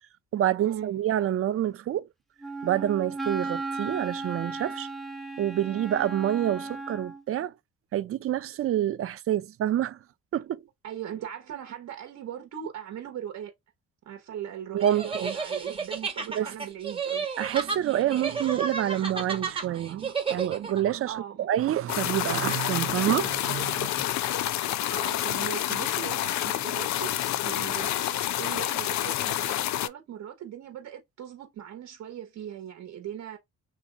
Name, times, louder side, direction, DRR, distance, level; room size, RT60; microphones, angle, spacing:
voice 1, 0.3-2.1 2.6-4.9 5.4-7.5 7.9-10.0 10.3-10.6 14.7-15.4 16.3-16.5 17.4-24.1, right 11 dB, 50° right, 0.5 m, -27 dB
Wind instrument woodwind instrument, 2.4-7.2, right 3 dB, ahead, 0.6 m, -35 dB
voice 2, 10.8-13.5 14.0-17.3 21.1-21.5 24.9-33.4, right 10 dB, 70° right, 1.1 m, -39 dB
sound 1, 14.8-20.8, right 5 dB, 20° right, 1.0 m, -32 dB
sound 2, 21.9-29.9, left 13 dB, 65° left, 0.4 m, -28 dB
2.8 x 2.3 x 3.8 m
cardioid pair, 90°, 30 cm